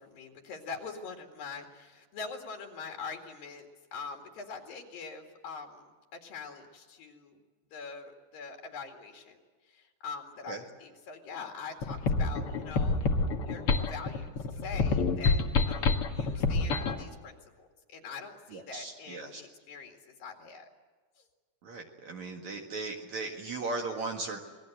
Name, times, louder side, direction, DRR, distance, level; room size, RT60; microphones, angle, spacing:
voice 1, 0.0-3.7 3.9-7.4 7.7-9.4 9.7-13.1 13.4-20.7 21.2-21.3, left 5 dB, 65° left, 3 dB, 3.8 m, -44 dB
sound 1, 11.8-17.0, left 4 dB, 45° left, 2.1 m, -27 dB
voice 2, 18.5-19.4 21.6-24.4, right 3 dB, 55° right, 2 dB, 2.8 m, -37 dB
27.5 x 21.5 x 7.9 m, 1.4 s
omnidirectional pair, 4.5 m